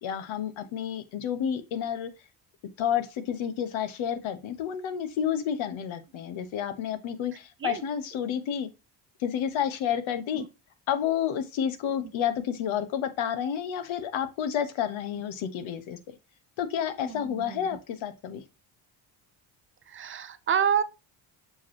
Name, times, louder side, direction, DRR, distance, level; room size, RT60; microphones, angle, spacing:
voice 1, 0.0-2.1 2.8-8.7 9.2-10.4 10.9-16.0 16.6-18.4, left 9 dB, 75° left, 1.2 m, -30 dB
voice 2, 17.0-17.6 19.9-20.8, right 8 dB, 25° right, 0.4 m, -29 dB
6.5 x 5.2 x 2.9 m
cardioid pair, 175°, 48 cm